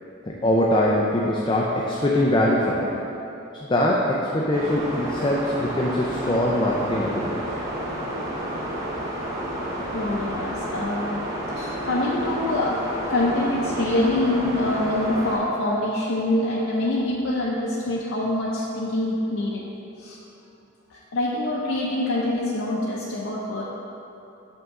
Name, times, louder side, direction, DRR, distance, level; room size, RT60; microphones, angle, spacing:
voice 1, 0.2-2.9 3.7-7.4, left 1 dB, 25° left, -3 dB, 0.4 m, -22 dB
sound 1, 4.5-15.4, equal, 15° right, 0.9 m, -30 dB
voice 2, 9.9-11.2 11.6-12.8 13.1-19.6 20.0-20.2 20.9-23.6, left 1 dB, 70° left, -5 dB, 0.6 m, -25 dB
6.4 x 5.5 x 3.6 m, 3.0 s
head